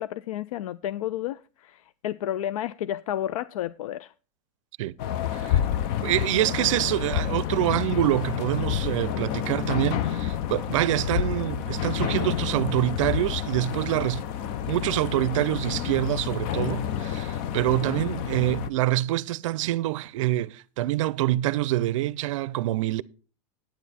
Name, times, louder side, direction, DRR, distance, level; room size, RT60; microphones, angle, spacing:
voice 1, 0.0-4.1, left 12 dB, 90° left, 0.4 m, -31 dB
sound 1, 5.0-18.7, left 10 dB, 40° left, 0.6 m, -29 dB
voice 2, 6.0-14.2 14.7-23.0, right 15 dB, 65° right, 0.5 m, -26 dB
9.2 x 9.1 x 4.2 m
supercardioid pair, 155°, 17 cm